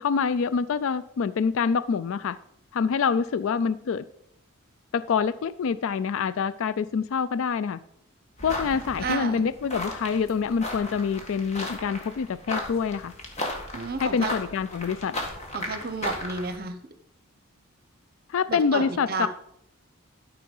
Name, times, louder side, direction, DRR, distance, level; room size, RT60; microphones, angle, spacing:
voice 1, 0.0-2.4 2.7-4.0 4.9-7.8 8.4-13.1 14.0-15.1 18.3-19.3, left 6 dB, 65° left, 16 dB, 0.3 m, -26 dB
sound 1, 8.4-16.6, left 1 dB, 30° left, 1.8 m, -35 dB
voice 2, 9.0-9.5 13.7-14.3 15.5-16.8 18.5-19.3, right 4 dB, 45° right, 9 dB, 0.9 m, -31 dB
12.5 x 5.6 x 5.4 m, 0.72 s
head